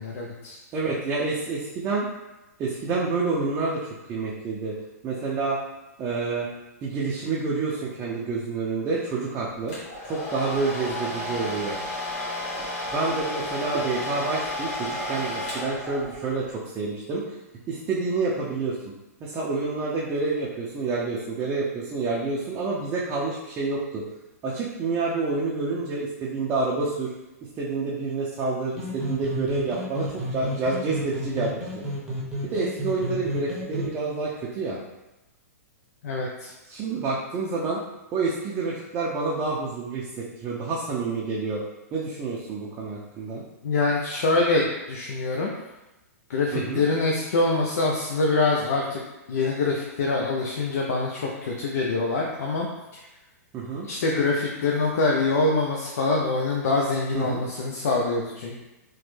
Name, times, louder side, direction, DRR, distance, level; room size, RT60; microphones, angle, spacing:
voice 1, 0.0-0.6 36.0-36.5 43.6-45.5 46.3-49.0 49.3-52.7 52.9-53.0 53.8-58.6, left 3 dB, 70° left, -1 dB, 0.5 m, -25 dB
voice 2, 0.7-2.1 2.6-4.8 5.0-5.6 6.0-6.5 6.8-9.8 10.0-11.8 12.9-17.4 17.7-18.9 19.2-24.0 24.4-27.1 27.6-31.8 32.4-34.8 36.7-37.8 38.1-41.6 41.9-43.4 46.5-46.8 53.5-53.9 57.1-57.4, right 3 dB, 25° right, -5 dB, 0.5 m, -28 dB
Domestic sounds home sounds, 9.7-16.4, left 1 dB, 45° left, 1.2 m, -32 dB
sound 1, 28.7-33.9, equal, 5° right, 0.8 m, -32 dB
3.0 x 2.1 x 3.1 m, 1.0 s
hypercardioid pair, 130°, 9 cm